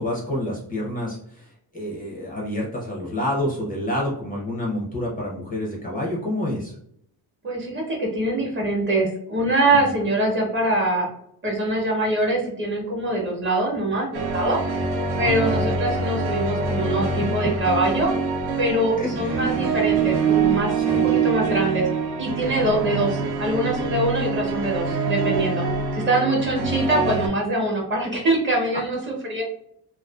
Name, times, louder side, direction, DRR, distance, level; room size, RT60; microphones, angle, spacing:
voice 1, 0.0-6.7 15.2-15.7 17.2-17.3 19.0-19.4 20.7-21.2, left 1 dB, 20° left, -3 dB, 0.4 m, -28 dB
voice 2, 7.4-11.1 11.4-14.6 15.2-18.1 18.6-21.9 22.2-25.6 25.9-29.4, right 1 dB, 30° right, -2 dB, 0.8 m, -23 dB
sound 1, 14.1-27.3, right 5 dB, 70° right, 0.7 m, -25 dB
2.4 x 2.2 x 2.2 m, 0.69 s
cardioid pair, 145°, 39 cm